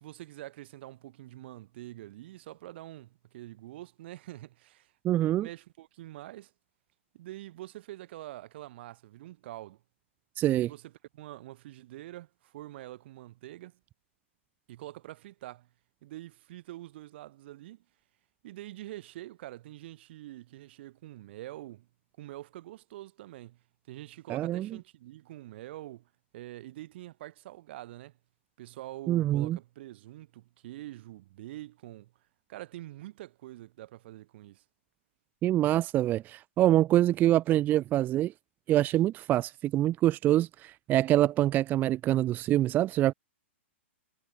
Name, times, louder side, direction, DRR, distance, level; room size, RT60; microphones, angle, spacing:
voice 1, 0.0-6.5 7.1-9.8 10.5-13.8 14.7-15.7 16.0-17.8 18.4-21.9 22.2-23.6 23.9-28.1 28.6-32.1 32.5-34.6, right 15 dB, 55° right, 1.6 m, -45 dB
voice 2, 5.0-5.5 10.4-10.7 24.3-24.7 29.1-29.6 35.4-38.3 38.7-43.1, right 13 dB, 25° right, 0.6 m, -25 dB
hypercardioid pair, 125°, 7 cm